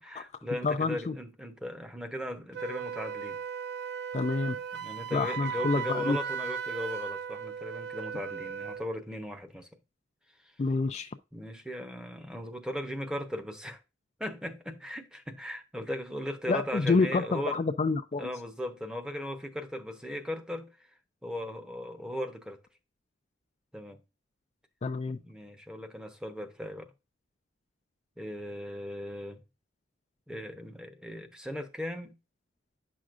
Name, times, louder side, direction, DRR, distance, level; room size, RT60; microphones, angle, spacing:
voice 1, 0.0-3.4 4.5-9.7 11.3-13.8 14.2-17.6 18.2-22.6 23.7-24.0 25.1-26.9 28.2-29.4 30.3-32.1, left 1 dB, 5° right, 0.8 m, -38 dB
voice 2, 0.6-1.1 4.1-4.6 5.1-6.2 10.6-11.1 16.5-18.3 24.8-25.2, left 3 dB, 35° left, 0.4 m, -28 dB
Wind instrument woodwind instrument, 2.5-8.9, right 7 dB, 55° right, 0.4 m, -37 dB
9.5 x 6.2 x 2.5 m
head